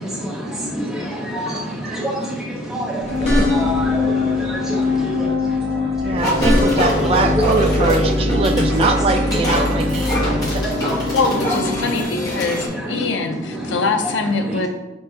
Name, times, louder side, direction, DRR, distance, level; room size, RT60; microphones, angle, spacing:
voice 1, 0.0-6.3 7.0-7.1 7.4-7.6 9.2-11.2 11.7-13.1 13.5-13.8 14.0-14.1 14.5-14.7, equal, ahead, -4 dB, 0.8 m, -27 dB
sound 1, 3.0-3.9 5.9-7.1, left 1 dB, 35° left, 1.6 m, -21 dB
sound 2, 3.1-12.0, left 3 dB, 65° right, 0.6 m, -22 dB
voice 2, 6.0-10.1 10.5-10.6, right 4 dB, 30° right, 7 dB, 0.3 m, -22 dB
sound 3, 6.2-12.7, left 1 dB, 20° left, 1.2 m, -24 dB
voice 3, 11.1-14.7, left 3 dB, 75° left, 6 dB, 0.5 m, -23 dB
4.5 x 4.0 x 2.8 m, 1.0 s
head